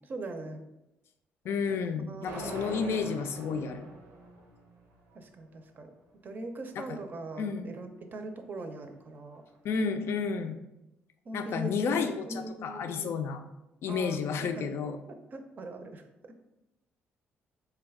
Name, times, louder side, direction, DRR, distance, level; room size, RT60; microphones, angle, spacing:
voice 1, 0.0-0.6 1.4-1.6 2.1-2.3 5.1-5.9 6.2-9.4 11.3-13.2 13.9-14.7 15.3-16.0, right 2 dB, 45° right, 6 dB, 0.5 m, -41 dB
voice 2, 1.4-3.9 6.8-7.0 7.4-7.7 9.6-10.6 11.3-13.4 13.8-15.0, left 5 dB, 65° left, 8 dB, 0.4 m, -31 dB
sound 1, 2.3-5.2, right 2 dB, 90° right, 0.7 m, -42 dB
3.7 x 2.3 x 3.4 m, 0.94 s
cardioid pair, 85°, 4 cm